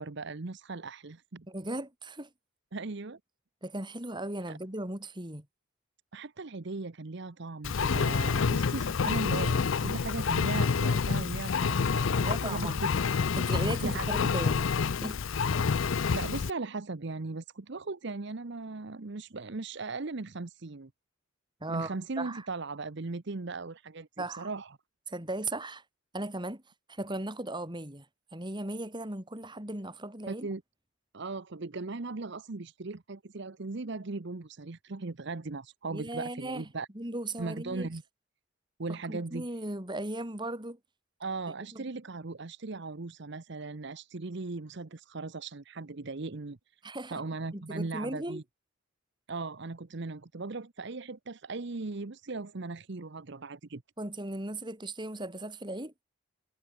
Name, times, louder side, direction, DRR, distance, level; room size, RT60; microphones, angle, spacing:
voice 1, 0.0-1.5 2.7-3.2 4.5-4.6 6.1-12.7 13.8-14.1 16.1-20.9 21.7-24.8 30.3-30.6 31.1-36.9 37.4-38.0 38.8-39.5 41.2-46.6 47.1-48.4 49.3-53.8, right 3 dB, 55° right, 0.9 m, -38 dB
voice 2, 1.5-2.3 3.6-5.5 12.2-12.9 13.4-14.7 15.0-15.2 21.6-22.5 24.2-24.5 25.1-25.8 26.1-26.6 26.9-28.1 28.3-30.5 35.9-36.6 37.0-37.9 39.1-40.8 41.7-41.8 46.8-47.2 47.5-48.4 54.0-55.9, right 1 dB, 20° right, 3.4 m, -37 dB
Engine, 7.6-16.5, left 5 dB, 65° left, 0.5 m, -28 dB
head